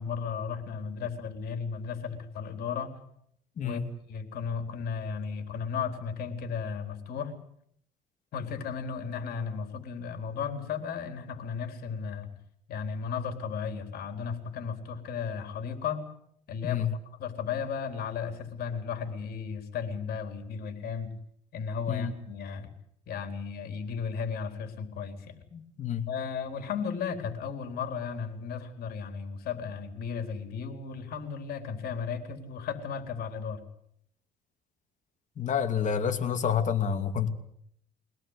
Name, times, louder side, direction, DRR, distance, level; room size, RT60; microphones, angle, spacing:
voice 1, 0.0-2.9 3.6-3.8 4.1-7.3 8.3-12.3 12.7-16.0 16.5-16.9 17.2-21.1 21.5-22.7 23.1-25.4 26.1-33.6, left 6 dB, 65° left, 6 dB, 4.2 m, -35 dB
voice 2, 25.5-26.0 35.4-37.3, left 8 dB, 45° left, 6 dB, 2.7 m, -28 dB
24.0 x 18.0 x 8.3 m, 0.69 s
cardioid pair, 110°, 17 cm